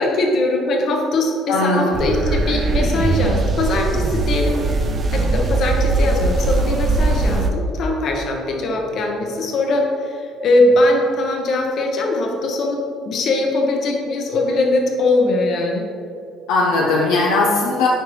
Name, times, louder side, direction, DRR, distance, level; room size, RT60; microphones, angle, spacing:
voice 1, 0.0-4.7 5.1-12.8 13.0-15.9, left 2 dB, 60° left, 1 dB, 1.2 m, -20 dB
voice 2, 1.5-1.9 16.5-17.9, left 3 dB, 80° left, -2 dB, 0.7 m, -18 dB
sound 1, 1.9-7.5, right 3 dB, 40° right, 0.5 m, -20 dB
9.1 x 4.6 x 3.2 m, 2.4 s
supercardioid pair, 85°, 0 cm